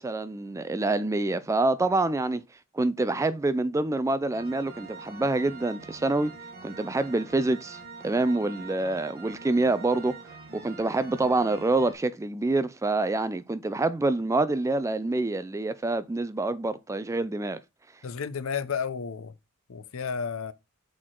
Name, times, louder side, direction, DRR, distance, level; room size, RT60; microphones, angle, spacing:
voice 1, 0.0-2.4 2.7-6.3 6.6-10.1 10.5-17.6, right 2 dB, 15° right, 0.3 m, -26 dB
sound 1, 4.3-11.9, right 4 dB, 45° right, 1.6 m, -45 dB
voice 2, 18.0-19.3 19.7-20.5, left 6 dB, 70° left, 0.6 m, -32 dB
6.3 x 4.6 x 3.7 m
head